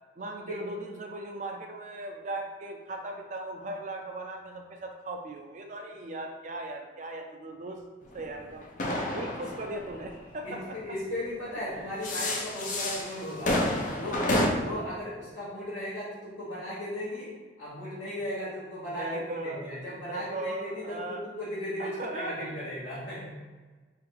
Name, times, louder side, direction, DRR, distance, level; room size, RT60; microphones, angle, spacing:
voice 1, 0.2-7.8 8.1-8.7 9.1-10.8 11.7-11.8 19.0-19.8 20.1-21.2 21.8-22.7, right 2 dB, 40° right, 3 dB, 0.3 m, -38 dB
sound 1, 8.1-10.9 11.7-14.5, left 1 dB, 40° left, 0.5 m, -30 dB
voice 2, 10.4-13.6 13.9-23.3, left 1 dB, 60° left, -11 dB, 1.2 m, -36 dB
3.7 x 2.4 x 4.6 m, 1.3 s
head